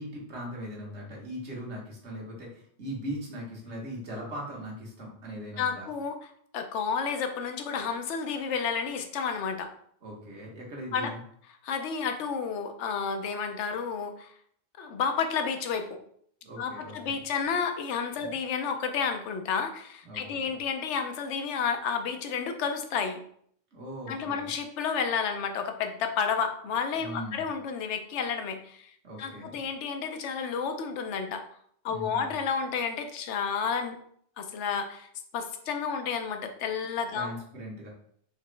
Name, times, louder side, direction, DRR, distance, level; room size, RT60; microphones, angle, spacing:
voice 1, 0.0-5.9 10.0-11.2 16.4-17.2 18.2-18.3 20.0-20.5 23.7-24.5 27.0-27.5 29.0-29.6 31.9-32.3 37.1-37.9, equal, 75° right, -3 dB, 1.6 m, -40 dB
voice 2, 5.6-6.1 6.5-9.7 10.9-11.1 11.6-14.3 14.8-16.0 16.6-23.2 24.1-28.9 29.2-31.4 31.8-34.0 34.4-35.1 35.3-37.3, left 6 dB, 85° left, 7 dB, 0.9 m, -31 dB
4.5 x 2.9 x 3.2 m, 0.64 s
omnidirectional pair, 1.2 m